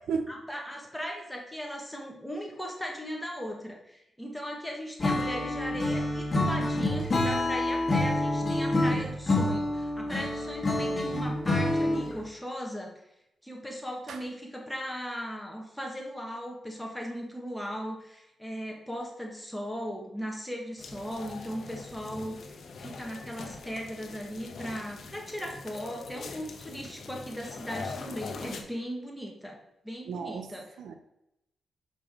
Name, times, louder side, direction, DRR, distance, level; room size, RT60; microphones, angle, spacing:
voice 1, 0.3-12.9 13.4-29.6 29.8-30.8, equal, 5° left, 0 dB, 1.6 m, -38 dB
Acoustic guitar / Strum, 5.0-12.2, left 1 dB, 35° left, 1.8 m, -27 dB
sound 1, 20.8-28.6, left 4 dB, 65° left, 0.9 m, -42 dB
voice 2, 30.1-30.5 30.8-30.9, right 5 dB, 85° right, 7 dB, 0.6 m, -33 dB
6.5 x 4.9 x 3.8 m, 0.84 s
cardioid pair, 90°, 0 cm